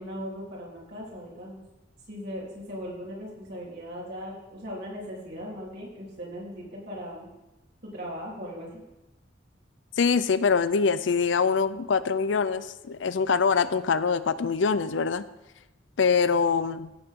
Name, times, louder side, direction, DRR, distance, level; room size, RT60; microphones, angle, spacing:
voice 1, 0.0-1.6 2.1-7.3 7.9-8.8, equal, 60° right, -4 dB, 3.6 m, -38 dB
voice 2, 10.0-15.2 16.0-16.9, left 5 dB, 75° left, 15 dB, 0.5 m, -24 dB
16.5 x 6.7 x 3.7 m, 0.98 s
head